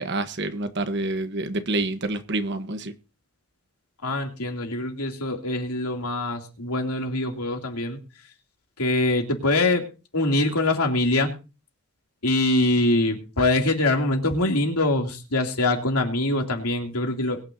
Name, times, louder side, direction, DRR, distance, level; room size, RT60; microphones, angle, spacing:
voice 1, 0.0-2.9, right 2 dB, 50° right, 9 dB, 1.2 m, -27 dB
voice 2, 4.0-8.0 8.8-9.8 10.1-11.3 12.2-17.4, left 2 dB, 90° left, 2 dB, 2.9 m, -24 dB
22.0 x 9.5 x 2.8 m, 0.32 s
head